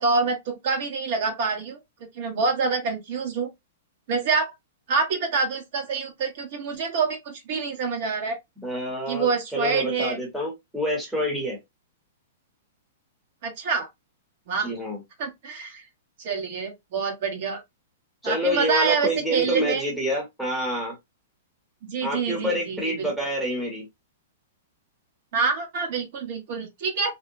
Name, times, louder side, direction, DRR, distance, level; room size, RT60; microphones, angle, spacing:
voice 1, 0.0-1.8 2.1-3.5 4.1-4.5 4.9-8.4 9.1-10.2 13.4-13.9 14.5-14.7 15.2-15.8 16.2-17.6 18.2-19.8 21.8-23.1 25.3-27.1, right 5 dB, 50° right, 0.9 m, -26 dB
voice 2, 8.6-11.6 14.6-15.0 18.2-21.0 22.0-23.9, equal, ahead, 0.8 m, -27 dB
2.7 x 2.0 x 2.5 m
hypercardioid pair, 155°, 0 cm